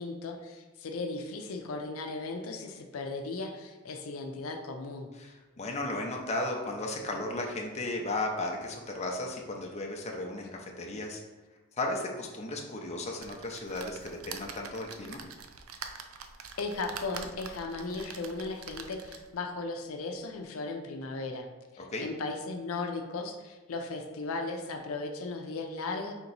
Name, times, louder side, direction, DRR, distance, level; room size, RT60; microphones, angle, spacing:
voice 1, 0.0-5.1 16.6-21.5 21.7-26.1, left 3 dB, 85° left, 4 dB, 0.5 m, -36 dB
voice 2, 5.2-11.2 11.8-15.2 21.8-22.1, left 2 dB, 35° left, 1 dB, 0.5 m, -35 dB
sound 1, 13.2-19.4 20.0-20.1 20.3-20.4, right 6 dB, 75° right, 0.4 m, -45 dB
4.3 x 2.9 x 3.9 m, 1.2 s
head